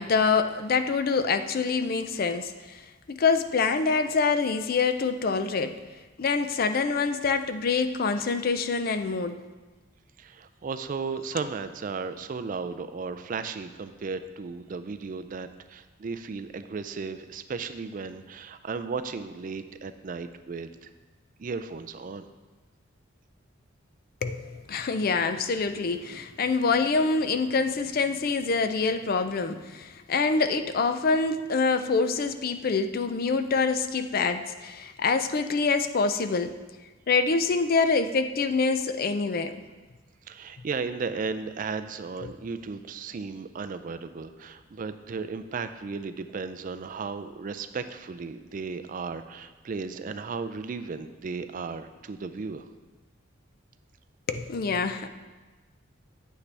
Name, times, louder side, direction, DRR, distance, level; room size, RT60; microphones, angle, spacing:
voice 1, 0.0-2.8 3.1-5.8 6.2-9.4 24.2-36.6 37.1-39.6 42.2-42.3 54.3-55.1, left 4 dB, 45° left, 9 dB, 0.4 m, -26 dB
voice 2, 10.2-20.9 21.4-22.3 40.3-52.7, right 4 dB, 40° right, 10 dB, 0.3 m, -35 dB
8.4 x 8.1 x 3.3 m, 1.3 s
head